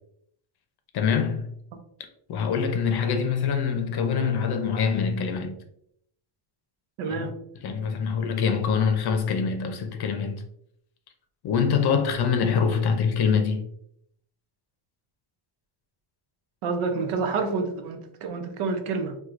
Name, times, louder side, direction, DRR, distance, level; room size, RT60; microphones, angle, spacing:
voice 1, 0.9-1.5 2.3-5.6 7.0-7.3 7.6-10.4 11.4-13.7, left 6 dB, 50° left, 0.6 m, -24 dB
voice 2, 7.0-7.3 16.6-19.2, right 4 dB, 80° right, 0.7 m, -28 dB
4.3 x 2.3 x 2.4 m
cardioid pair, 135°, 50 cm